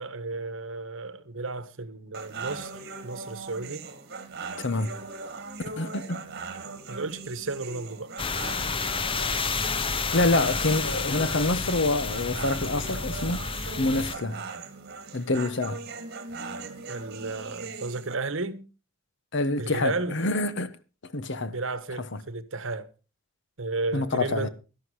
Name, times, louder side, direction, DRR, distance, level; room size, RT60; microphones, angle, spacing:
voice 1, 0.0-2.7 3.0-3.9 6.9-8.1 16.9-18.6 19.6-20.2 21.5-22.9 23.6-24.5, right 3 dB, 70° right, 1.2 m, -33 dB
sound 1, 2.1-18.2, right 4 dB, 55° right, 1.9 m, -40 dB
voice 2, 4.6-4.9 5.8-6.2 10.1-13.5 13.8-14.4 15.1-15.8 19.3-20.8 21.1-21.6 22.1-22.2 23.9-24.5, left 2 dB, 60° left, 1.1 m, -26 dB
sound 2, 8.2-14.1, left 4 dB, 25° left, 0.7 m, -30 dB
12.0 x 11.5 x 4.8 m
head